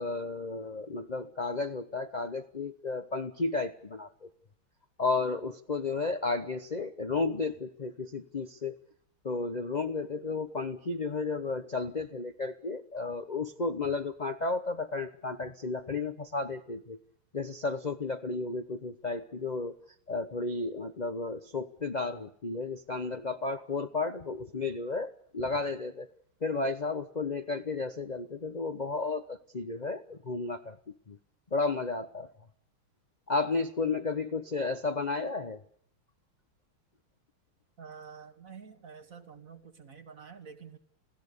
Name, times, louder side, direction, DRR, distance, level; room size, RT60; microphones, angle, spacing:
voice 1, 0.0-4.3 5.0-8.7 9.2-17.0 17.3-19.7 20.1-26.1 26.4-30.8 31.1-31.2 31.5-32.3 33.3-35.6, left 3 dB, 60° left, 6 dB, 0.4 m, -33 dB
voice 2, 37.8-40.8, right 6 dB, 40° right, 9 dB, 1.8 m, -48 dB
28.5 x 16.5 x 6.8 m, 0.63 s
omnidirectional pair, 2.3 m